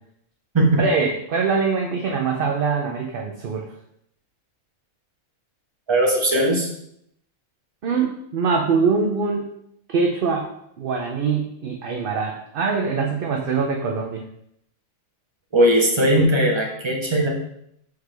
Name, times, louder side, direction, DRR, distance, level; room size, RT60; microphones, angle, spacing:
voice 1, 0.8-3.7 7.8-9.5 9.9-14.2, right 5 dB, 55° right, 2 dB, 0.7 m, -23 dB
voice 2, 5.9-6.7 15.5-17.3, right 1 dB, 20° right, -2 dB, 1.2 m, -18 dB
6.6 x 4.6 x 3.3 m, 0.75 s
omnidirectional pair, 1.4 m